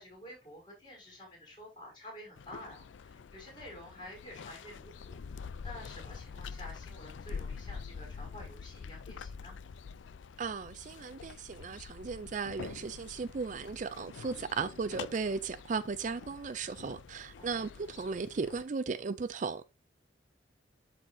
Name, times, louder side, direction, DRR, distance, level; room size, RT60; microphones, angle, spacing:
voice 1, 0.0-9.6 17.4-17.7, left 1 dB, 25° left, 5.4 m, -50 dB
sound 1, 2.4-18.6, left 5 dB, 85° left, 0.4 m, -46 dB
voice 2, 10.4-19.6, right 4 dB, 40° right, 0.4 m, -36 dB
12.5 x 4.2 x 2.7 m
head